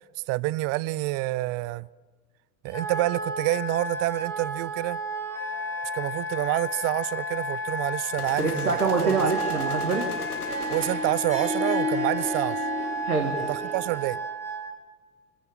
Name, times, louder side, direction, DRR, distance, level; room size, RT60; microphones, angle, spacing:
voice 1, 0.3-1.9 2.6-5.0 5.9-9.1 10.7-12.6 13.5-14.2, right 19 dB, 35° right, 0.6 m, -28 dB
Wind instrument woodwind instrument, 2.7-14.7, right 1 dB, 5° left, 3.0 m, -32 dB
sound 1, 8.2-11.3, left 5 dB, 85° left, 1.5 m, -40 dB
voice 2, 8.4-10.1 13.0-13.3, right 4 dB, 80° right, 2.3 m, -25 dB
Harp, 8.8-14.2, left 2 dB, 15° right, 5.9 m, -33 dB
25.5 x 15.0 x 8.8 m
figure-of-eight pair, 75°, 44 cm